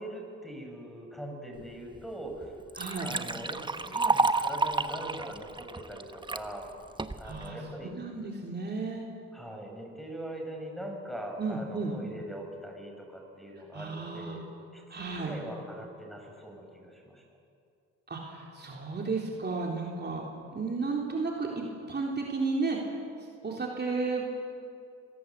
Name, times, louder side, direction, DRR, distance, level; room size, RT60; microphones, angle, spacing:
voice 1, 0.0-2.6 3.0-6.7 7.2-7.9 9.3-14.4 14.7-17.2, right 1 dB, ahead, 2 dB, 6.2 m, -42 dB
Liquid, 1.9-2.0 2.4-6.4 7.0-7.5, right 3 dB, 15° right, 1.1 m, -30 dB
voice 2, 2.8-3.1 7.2-9.0 11.4-11.9 13.7-14.4 14.9-15.3 18.1-20.2 20.5-22.9 23.4-24.2, right 4 dB, 35° right, -1 dB, 3.6 m, -33 dB
25.5 x 18.0 x 8.4 m, 2.5 s
cardioid pair, 90°, 30 cm